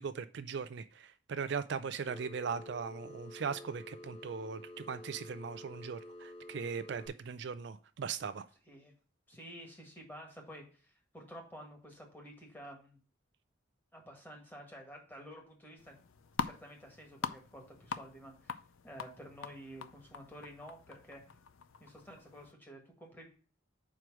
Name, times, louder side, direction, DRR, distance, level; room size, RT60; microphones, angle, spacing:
voice 1, 0.0-4.6 4.9-8.4, right 6 dB, 55° right, 11 dB, 0.4 m, -39 dB
Telephone, 2.1-7.1, left 1 dB, 25° left, 2.0 m, -50 dB
voice 2, 9.3-13.0 13.9-16.0 16.4-18.5 18.8-21.2 21.8-23.3, equal, 10° left, 1 dB, 1.7 m, -51 dB
sound 1, 15.8-22.5, left 6 dB, 90° left, 0.5 m, -44 dB
4.8 x 4.6 x 6.0 m, 0.38 s
head